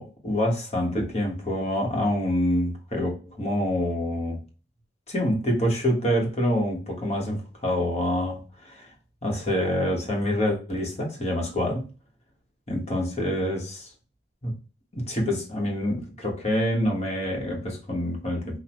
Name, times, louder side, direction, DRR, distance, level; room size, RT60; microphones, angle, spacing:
voice 1, 0.0-4.4 5.1-8.9 9.2-11.9 12.7-13.9 14.4-14.5 14.9-18.6, left 1 dB, 40° left, 1.4 m, -26 dB
6.1 x 2.6 x 3.1 m
head